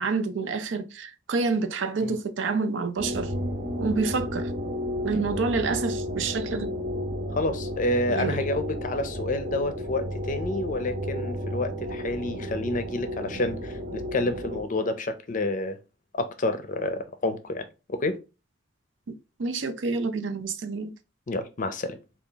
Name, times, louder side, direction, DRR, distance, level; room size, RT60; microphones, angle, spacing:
voice 1, 0.0-3.3 3.8-4.5 5.0-6.7 8.1-8.4 19.4-20.9, right 4 dB, 70° right, 0.5 m, -28 dB
sound 1, 3.0-14.6, equal, 40° right, 0.8 m, -32 dB
voice 2, 7.3-15.8 16.1-18.2 21.3-22.0, left 2 dB, 45° left, 0.5 m, -29 dB
3.5 x 2.4 x 3.8 m
head